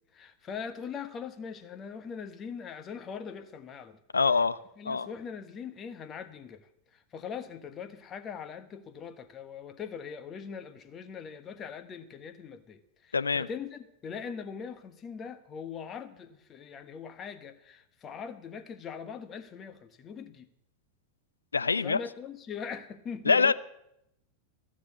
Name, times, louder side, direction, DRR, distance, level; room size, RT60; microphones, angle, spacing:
voice 1, 0.1-4.0 4.8-6.7 7.1-20.5 21.8-23.5, left 6 dB, 25° left, 10 dB, 1.2 m, -41 dB
voice 2, 4.1-4.6 4.8-5.1 13.1-13.5 21.5-22.0 23.2-23.5, left 4 dB, 75° left, 14 dB, 0.5 m, -24 dB
15.0 x 7.4 x 8.3 m, 0.81 s
figure-of-eight pair, 90°, 0 cm